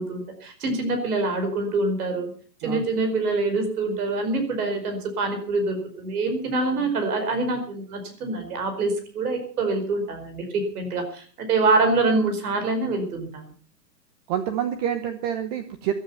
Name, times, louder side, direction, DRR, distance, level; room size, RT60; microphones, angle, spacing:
voice 1, 0.0-2.3 2.6-13.4, right 3 dB, 60° right, 6 dB, 5.0 m, -25 dB
voice 2, 14.3-15.9, right 9 dB, 25° right, 9 dB, 0.9 m, -27 dB
17.0 x 12.5 x 5.7 m, 0.43 s
hypercardioid pair, 155°, 49 cm